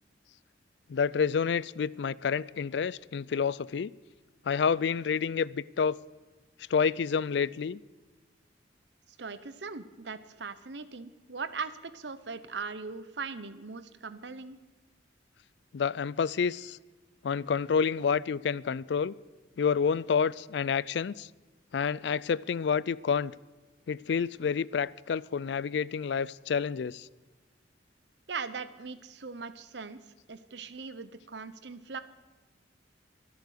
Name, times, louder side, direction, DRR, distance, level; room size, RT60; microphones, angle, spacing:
voice 1, 0.9-3.9 4.5-6.0 6.7-7.8 15.7-16.8 17.2-19.1 19.6-21.3 21.7-23.3 23.9-27.1, left 6 dB, 65° left, 0.4 m, -29 dB
voice 2, 9.2-14.6 28.3-30.0 30.3-32.0, right 4 dB, 70° right, 0.9 m, -40 dB
24.0 x 8.3 x 6.6 m
head